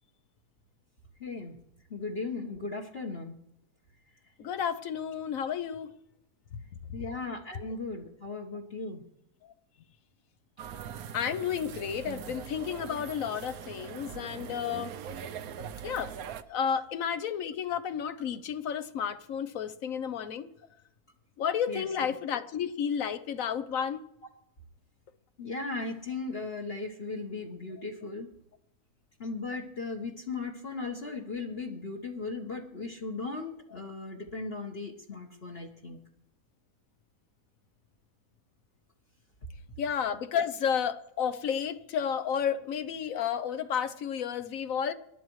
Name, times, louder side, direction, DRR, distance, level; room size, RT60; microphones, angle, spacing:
voice 1, 1.2-1.6 1.9-3.3 6.9-9.0 21.7-21.9 25.4-28.3 29.2-36.0, left 3 dB, 40° left, 1.5 m, -37 dB
voice 2, 4.4-5.9 11.1-14.9 15.8-16.1 16.5-20.5 21.4-24.0 39.8-44.9, left 8 dB, 60° left, 1.2 m, -31 dB
sound 1, 10.6-16.4, right 8 dB, 70° right, 1.1 m, -42 dB
27.0 x 12.0 x 3.2 m
omnidirectional pair, 1.7 m